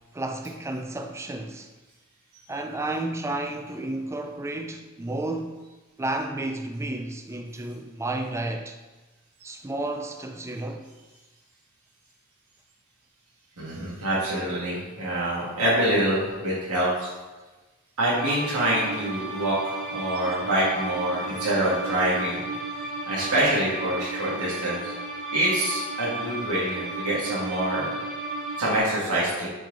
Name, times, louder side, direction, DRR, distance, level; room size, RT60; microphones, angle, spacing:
voice 1, 0.1-1.7 2.5-5.6 6.0-8.8 9.4-10.9, right 2 dB, 15° right, 0.4 m, -32 dB
voice 2, 13.6-17.1 18.0-22.4 23.1-24.9 25.3-27.9 28.6-29.5, right 1 dB, 75° right, 2.0 m, -26 dB
sound 1, 18.2-28.8, right 2 dB, 60° right, 1.8 m, -34 dB
7.6 x 4.7 x 4.0 m
head